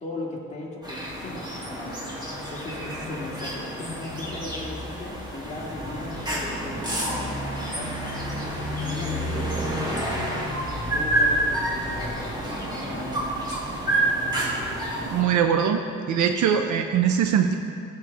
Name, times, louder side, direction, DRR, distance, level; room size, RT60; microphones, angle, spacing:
voice 1, 0.0-2.0 2.5-8.0 8.8-9.7 10.0-13.4, left 2 dB, 25° left, -5 dB, 2.1 m, -38 dB
sound 1, 0.8-15.2, right 1 dB, 15° right, 2.1 m, -29 dB
voice 2, 15.0-15.8 16.1-17.5, right 8 dB, 75° right, 6 dB, 0.6 m, -21 dB
14.0 x 7.0 x 3.4 m, 2.4 s
cardioid pair, 90°, 30 cm